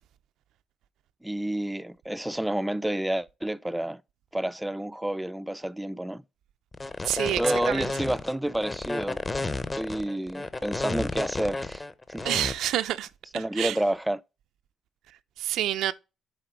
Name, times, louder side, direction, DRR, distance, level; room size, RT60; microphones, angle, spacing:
voice 1, 1.2-4.0 4.3-6.2 7.3-9.2 9.7-12.2 13.3-14.2, right 1 dB, 5° right, 0.4 m, -29 dB
sound 1, 6.7-12.5, left 3 dB, 25° left, 0.8 m, -32 dB
voice 2, 7.1-7.4 7.7-7.8 12.2-13.1 13.6-13.7 15.4-15.9, right 12 dB, 85° right, 0.5 m, -27 dB
7.8 x 4.3 x 4.5 m
cardioid pair, 90°, 0 cm